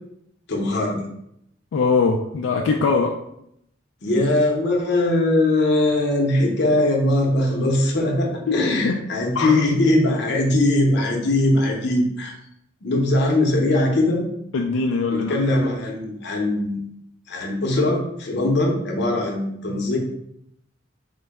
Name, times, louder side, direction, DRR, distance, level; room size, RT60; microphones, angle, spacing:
voice 1, 0.5-1.0 4.0-12.3 12.8-14.2 15.1-16.8 17.3-20.0, left 1 dB, 60° left, 0 dB, 0.7 m, -20 dB
voice 2, 1.7-3.2 8.5-8.6 8.8-9.0 9.4-9.6 14.5-15.4, left 4 dB, 85° left, 1 dB, 0.3 m, -21 dB
3.8 x 2.1 x 3.4 m, 0.76 s
head